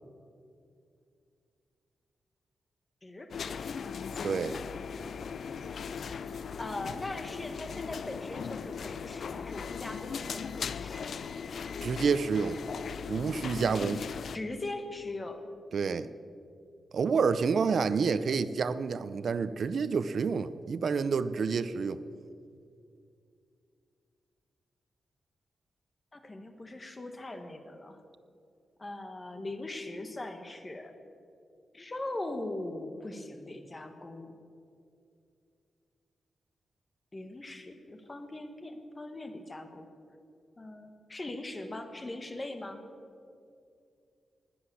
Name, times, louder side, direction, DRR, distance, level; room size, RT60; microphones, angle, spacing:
voice 1, 3.0-4.1 6.6-11.1 14.3-15.4 26.1-28.0 28.8-30.9 31.7-34.3 37.1-39.9 40.6-42.8, left 2 dB, 25° left, 7 dB, 1.3 m, -40 dB
sound 1, 3.3-14.4, left 6 dB, 60° left, 0.4 m, -38 dB
voice 2, 4.2-4.6 11.8-12.6 13.1-14.0 15.7-16.1 16.9-22.0, right 5 dB, 60° right, 14 dB, 0.5 m, -28 dB
20.0 x 7.8 x 6.9 m, 2.4 s
wide cardioid pair, 140°, 0 cm